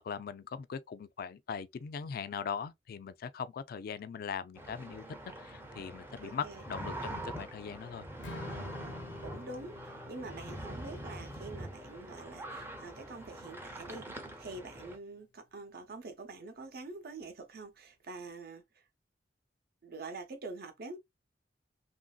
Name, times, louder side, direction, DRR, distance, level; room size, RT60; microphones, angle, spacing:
voice 1, 0.0-5.0 5.4-8.0, left 6 dB, 55° left, 0.3 m, -40 dB
sound 1, 4.6-15.0, right 1 dB, 10° right, 0.6 m, -44 dB
voice 2, 6.2-7.1 9.2-14.1 14.4-18.8 19.8-21.0, right 3 dB, 55° right, 0.7 m, -46 dB
Strum, 8.2-14.5, left 3 dB, 80° left, 0.7 m, -51 dB
3.1 x 2.5 x 2.3 m
head